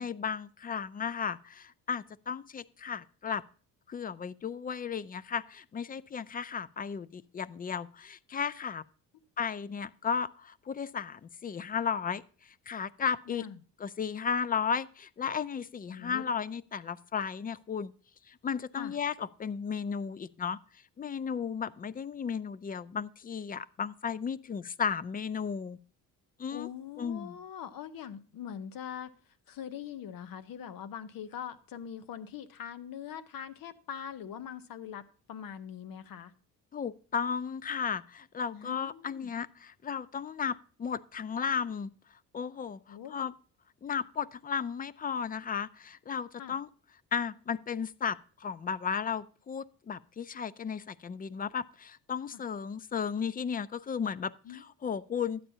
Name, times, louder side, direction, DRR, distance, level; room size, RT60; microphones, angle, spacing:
voice 1, 0.0-3.4 3.9-8.8 9.4-13.5 13.8-17.9 18.3-20.6 21.0-25.8 26.4-26.7 27.0-27.4 36.7-41.9 42.3-43.3 43.8-46.7 47.1-55.4, left 6 dB, 25° left, 0.4 m, -34 dB
voice 2, 13.3-13.6 15.9-16.2 18.7-19.0 26.5-36.3 38.5-39.3 42.9-43.2 46.4-46.6 52.3-52.4 54.4-54.6, left 9 dB, 60° left, 0.9 m, -42 dB
12.0 x 8.7 x 2.7 m
cardioid pair, 80°, 38 cm